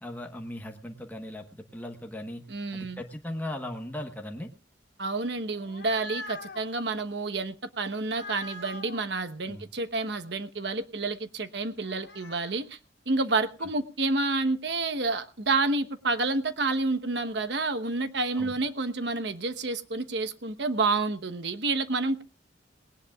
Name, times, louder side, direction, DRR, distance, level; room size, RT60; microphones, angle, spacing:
voice 1, 0.0-2.4 2.7-4.5 9.5-9.7 13.6-13.7 18.3-18.6, left 1 dB, 10° left, 1.2 m, -38 dB
voice 2, 2.5-3.0 5.0-12.8 13.1-22.2, right 3 dB, 65° right, 1.1 m, -29 dB
sound 1, 5.5-6.6 8.0-9.0 11.8-12.5, left 2 dB, 65° left, 2.1 m, -42 dB
20.0 x 18.0 x 2.4 m
head